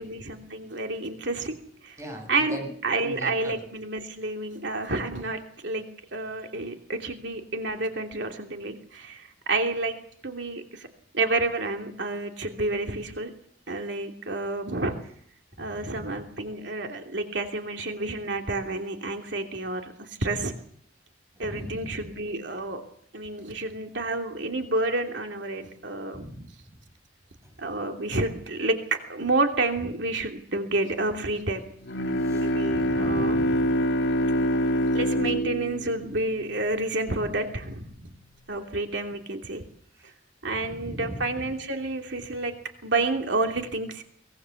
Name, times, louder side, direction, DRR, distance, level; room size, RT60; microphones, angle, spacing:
voice 1, 0.0-1.5 1.8-2.0 2.3-10.0 10.2-10.9 11.1-13.3 13.7-14.9 15.6-20.5 21.4-22.8 23.1-26.3 27.6-28.8 29.1-31.6 32.3-33.4 34.9-37.8 38.5-39.6 40.4-42.5 42.8-44.0, right 2 dB, 70° right, 4 dB, 2.9 m, -29 dB
voice 2, 2.0-2.7 3.0-3.6 15.6-16.1 21.4-22.1 26.1-26.8 27.4-27.5 32.2-33.7 37.2-37.3 37.9-38.1 40.0-40.1 40.6-41.5, equal, 15° right, 4 dB, 7.9 m, -40 dB
Bowed string instrument, 31.9-36.9, equal, 75° left, 1.5 m, -25 dB
24.0 x 20.5 x 7.2 m, 0.63 s
head